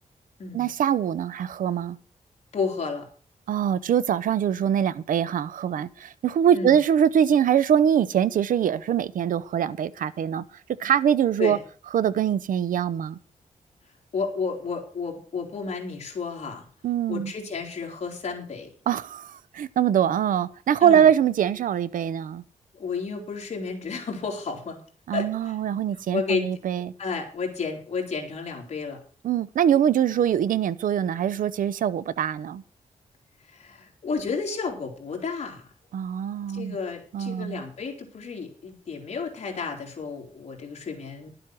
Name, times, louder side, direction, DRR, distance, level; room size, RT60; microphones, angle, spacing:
voice 1, 0.5-2.0 3.5-10.4 10.8-11.6 11.9-13.2 16.8-17.3 18.9-22.4 25.1-26.9 29.2-32.6 35.9-36.8 37.1-37.6, right 9 dB, 90° right, 0.6 m, -23 dB
voice 2, 2.5-3.1 6.5-6.7 11.4-11.6 14.1-16.7 17.1-18.7 20.8-21.1 22.7-24.8 25.1-25.5 25.9-26.5 27.0-29.0 33.5-35.7 36.5-41.3, left 5 dB, 55° left, 3.3 m, -32 dB
12.0 x 7.7 x 6.1 m
wide cardioid pair, 140°, 14 cm